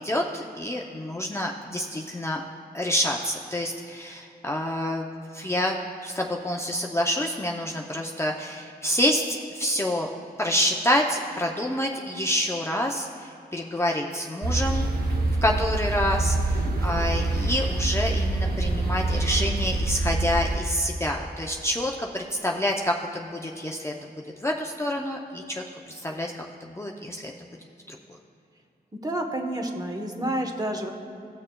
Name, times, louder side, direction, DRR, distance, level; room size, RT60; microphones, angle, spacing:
voice 1, 0.0-2.4 2.7-10.1 10.4-14.9 15.4-23.9 24.4-27.3 27.9-28.0, equal, 15° left, 0 dB, 0.5 m, -28 dB
sound 1, 14.4-20.6, right 2 dB, 60° right, 0.8 m, -25 dB
voice 2, 16.0-16.4 28.9-30.9, right 1 dB, 20° right, 3 dB, 0.9 m, -30 dB
18.0 x 6.5 x 2.2 m, 2.7 s
wide cardioid pair, 90°, 17 cm